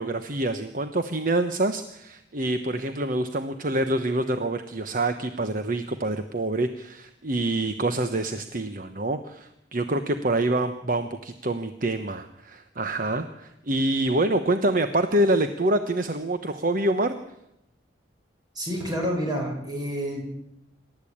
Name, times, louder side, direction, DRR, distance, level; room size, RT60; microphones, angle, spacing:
voice 1, 0.0-17.1, right 2 dB, 45° right, 9 dB, 1.0 m, -26 dB
voice 2, 18.6-20.2, equal, 20° right, 0 dB, 7.3 m, -28 dB
27.5 x 13.0 x 8.7 m, 0.83 s
head